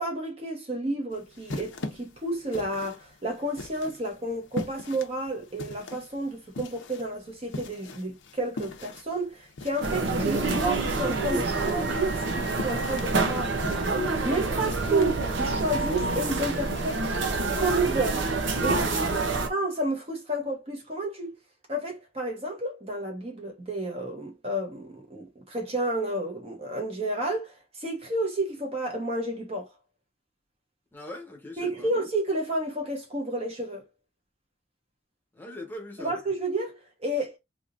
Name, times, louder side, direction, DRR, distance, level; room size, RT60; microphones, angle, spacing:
voice 1, 0.0-17.0 17.6-18.3 18.6-19.1 19.5-21.4 21.7-29.7 31.6-33.8 36.0-37.4, right 1 dB, 30° right, 0.9 m, -31 dB
sound 1, 1.1-17.3, left 2 dB, 70° left, 0.7 m, -42 dB
sound 2, 9.8-19.5, right 3 dB, 70° right, 0.7 m, -27 dB
voice 2, 18.8-19.5 30.9-31.9 35.3-36.2, left 1 dB, 10° left, 0.9 m, -41 dB
3.5 x 2.7 x 2.5 m
head